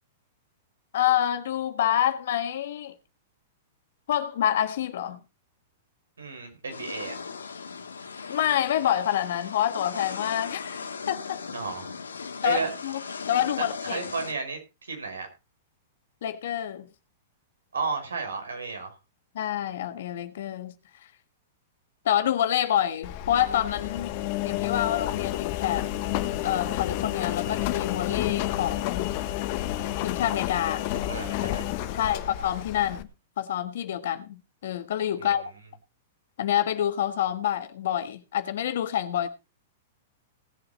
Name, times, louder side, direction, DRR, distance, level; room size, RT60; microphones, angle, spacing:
voice 1, 0.9-3.0 4.1-5.2 8.3-11.4 12.4-13.0 13.3-14.0 16.2-16.9 19.3-20.7 22.0-24.1 24.4-25.8 26.4-29.2 30.0-30.8 31.4-31.6 32.0-33.1 33.4-35.5 36.4-39.3, left 11 dB, 65° left, 1.4 m, -27 dB
voice 2, 6.2-7.1 11.5-11.9 12.4-12.7 13.6-15.3 17.7-18.9 30.9-31.6 31.9-32.2 35.2-35.3, right 4 dB, 85° right, 5.1 m, -33 dB
sound 1, 6.7-14.3, left 5 dB, 90° left, 1.8 m, -38 dB
Engine, 23.0-33.0, left 14 dB, 50° left, 1.4 m, -30 dB
18.0 x 8.0 x 4.2 m
hypercardioid pair, 115°, 0 cm